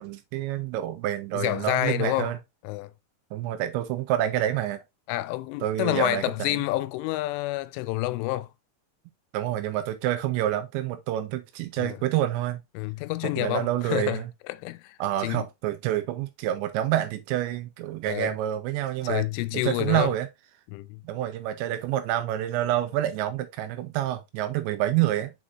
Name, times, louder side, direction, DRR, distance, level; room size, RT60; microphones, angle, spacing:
voice 1, 0.0-2.4 3.3-4.8 5.6-6.6 9.3-12.6 13.2-14.2 15.0-19.3 19.5-20.3 21.0-25.3, right 12 dB, 80° right, 2.7 m, -28 dB
voice 2, 1.3-2.3 2.6-2.9 5.1-8.5 11.8-12.0 12.8-15.5 18.1-18.3 19.0-20.1 20.7-21.0, left 18 dB, 85° left, 3.0 m, -29 dB
7.3 x 4.9 x 2.6 m
omnidirectional pair, 5.5 m